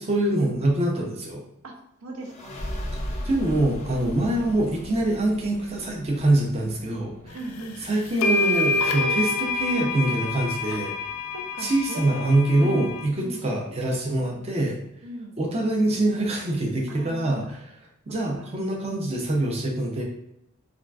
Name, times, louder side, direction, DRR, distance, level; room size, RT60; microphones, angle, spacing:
voice 1, 0.0-1.4 3.2-7.4 7.8-10.9 11.6-14.8 15.4-17.6 18.1-20.0, right 1 dB, 30° right, -1 dB, 0.5 m, -24 dB
voice 2, 2.0-2.5 3.9-4.2 7.3-7.8 10.7-10.8 11.3-12.9 13.2-13.5 14.2-14.5 15.0-15.4 16.9-17.5 18.4-18.5, right 1 dB, 75° right, 1 dB, 0.6 m, -38 dB
sound 1, 2.2-13.5, equal, 30° left, 0.4 m, -39 dB
sound 2, 7.6-7.7 8.2-13.0, left 3 dB, 90° left, 0.4 m, -27 dB
3.6 x 2.3 x 2.3 m, 0.79 s
head